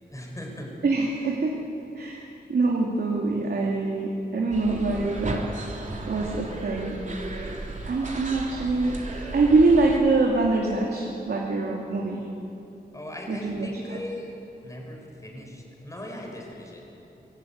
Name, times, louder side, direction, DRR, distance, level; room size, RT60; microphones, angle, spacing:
voice 1, 0.1-0.7 12.9-14.4 14.6-16.8, left 1 dB, 20° left, 0 dB, 5.8 m, -39 dB
voice 2, 0.8-1.6 1.9-5.5 6.1-7.0 7.9-12.2 13.3-13.7, right 3 dB, 70° right, -2 dB, 2.9 m, -24 dB
sound 1, 4.5-10.0, right 2 dB, 45° right, 3.4 m, -35 dB
23.5 x 19.0 x 9.4 m, 3.0 s
wide cardioid pair, 125°, 17 cm